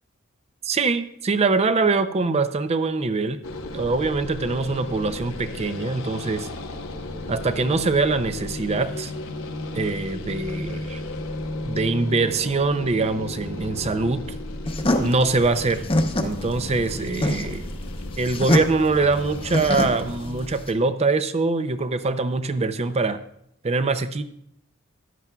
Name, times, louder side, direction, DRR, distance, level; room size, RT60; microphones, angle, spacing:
voice 1, 0.6-3.4 3.7-6.5 7.3-9.1 9.7-11.0 11.7-14.3 15.0-15.8 16.2-17.7 18.2-23.2 23.6-24.2, right 3 dB, 30° right, 11 dB, 0.5 m, -23 dB
sound 1, 3.4-20.5, left 2 dB, 85° left, 1.0 m, -34 dB
sound 2, 14.7-20.7, left 1 dB, 25° left, 0.8 m, -25 dB
14.0 x 10.5 x 2.3 m, 0.74 s
head